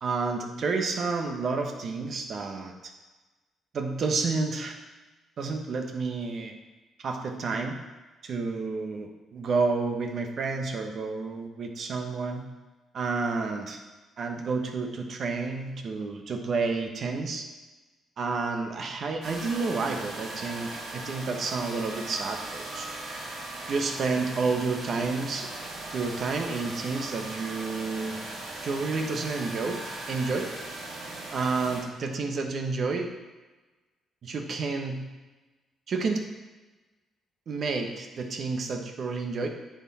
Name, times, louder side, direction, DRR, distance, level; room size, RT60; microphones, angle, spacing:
voice 1, 0.0-2.9 3.7-4.8 5.4-6.5 7.0-7.8 8.2-12.5 12.9-13.8 14.2-17.4 18.2-22.9 23.7-25.5 25.9-28.2 28.6-29.8 30.1-30.5 31.3-33.1 34.2-35.1 35.9-36.3 37.5-39.5, right 4 dB, 55° right, 4 dB, 1.2 m, -30 dB
sound 1, 19.2-31.8, right 2 dB, 80° right, 2.8 m, -38 dB
9.9 x 6.2 x 4.3 m, 1.2 s
cardioid pair, 90°, 0 cm